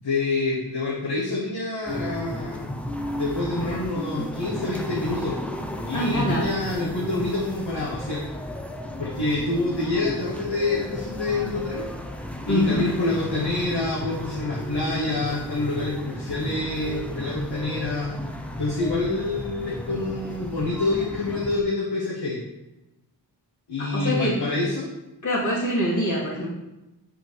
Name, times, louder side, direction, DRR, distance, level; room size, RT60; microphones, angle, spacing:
voice 1, 0.0-2.8 3.2-5.4 5.8-8.2 9.0-11.8 12.5-18.2 18.6-22.4 23.7-24.9, left 2 dB, 80° left, -6 dB, 1.4 m, -27 dB
sound 1, 1.9-21.6, equal, 5° left, 0.5 m, -34 dB
voice 2, 5.9-6.5 12.5-12.8 23.8-24.4 25.2-26.5, equal, 45° left, -8 dB, 1.8 m, -24 dB
8.2 x 4.4 x 3.2 m, 0.95 s
wide cardioid pair, 80°, 42 cm